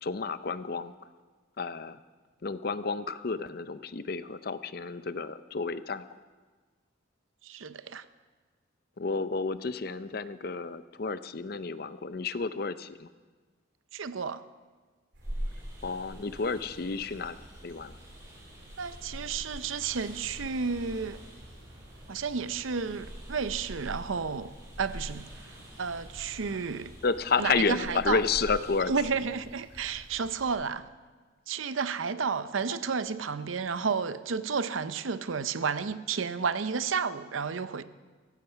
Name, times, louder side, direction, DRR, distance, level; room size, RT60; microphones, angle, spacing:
voice 1, 0.0-0.9 1.6-2.0 2.4-6.1 9.0-13.1 15.8-17.4 17.6-17.9 27.0-28.9, left 4 dB, 50° left, 13 dB, 0.6 m, -31 dB
voice 2, 7.4-8.0 13.9-14.4 18.8-21.2 22.1-25.3 25.8-26.9 27.4-28.2 28.9-30.9 31.5-37.8, right 5 dB, 90° right, 13 dB, 0.7 m, -32 dB
sound 1, 15.1-30.5, equal, 60° right, 3.3 m, -44 dB
sound 2, 15.2-28.8, right 1 dB, 15° right, 5.6 m, -53 dB
15.0 x 15.0 x 5.8 m, 1.4 s
head